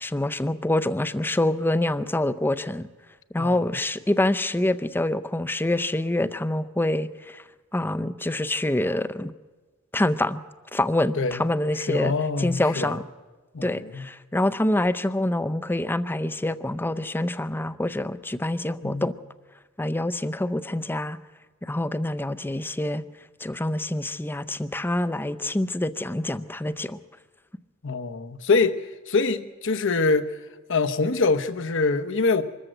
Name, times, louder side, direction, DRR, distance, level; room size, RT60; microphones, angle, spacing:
voice 1, 0.0-2.9 3.3-7.4 7.7-9.3 9.9-10.4 10.7-12.1 12.4-13.0 13.6-19.1 19.8-21.2 21.6-23.0 23.4-27.0, left 1 dB, 10° left, 0.5 m, -26 dB
voice 2, 11.8-13.0 13.5-14.1 18.8-19.1 27.8-30.4 30.7-32.4, left 3 dB, 60° left, 0.9 m, -24 dB
24.5 x 14.0 x 7.9 m
head